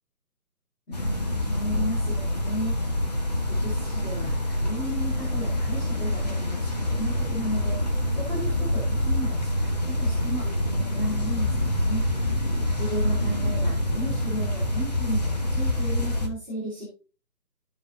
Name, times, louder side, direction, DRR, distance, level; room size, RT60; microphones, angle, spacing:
sound 1, 0.9-16.3, left 1 dB, 25° left, 0.9 m, -26 dB
voice 1, 0.9-3.2 3.5-12.0 12.7-16.9, equal, 5° left, -11 dB, 1.5 m, -35 dB
14.5 x 4.9 x 2.6 m, 0.33 s
figure-of-eight pair, 160°, 49 cm